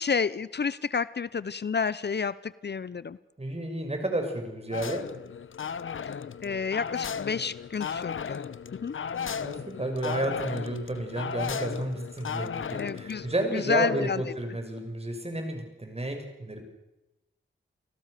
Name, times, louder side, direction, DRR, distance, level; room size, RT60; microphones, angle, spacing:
voice 1, 0.0-3.2 6.4-8.4 8.8-9.0 12.8-13.3 13.5-14.3, left 5 dB, 55° left, 18 dB, 0.8 m, -30 dB
voice 2, 3.4-5.0 9.4-16.6, right 1 dB, 30° right, 5 dB, 6.6 m, -31 dB
sound 1, 4.7-13.3, left 7 dB, 85° left, 1.0 m, -35 dB
29.5 x 19.0 x 6.8 m, 0.96 s
wide cardioid pair, 65°, 20 cm